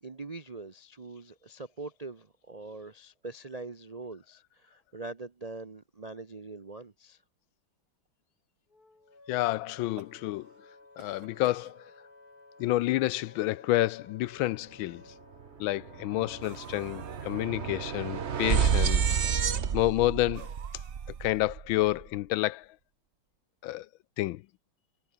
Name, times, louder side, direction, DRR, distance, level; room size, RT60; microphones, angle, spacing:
voice 1, 0.0-7.2, right 3 dB, 70° right, 0.3 m, -43 dB
Wind instrument woodwind instrument, 8.7-19.6, left 2 dB, 45° left, 6.1 m, -55 dB
voice 2, 9.3-10.5 11.0-11.8 12.6-15.0 15.6-19.2 19.7-20.5 21.2-22.7 23.6-23.9 24.2-24.4, left 16 dB, 75° left, 1.3 m, -29 dB
sound 1, 9.7-10.6 11.0-11.7 12.6-12.7 12.9-13.0 13.9-14.0 16.4-17.4 20.3-21.5, right 8 dB, 90° right, 2.6 m, -52 dB
sound 2, 15.3-15.5 15.8-22.0, right 7 dB, 40° right, 1.0 m, -30 dB
omnidirectional pair, 2.3 m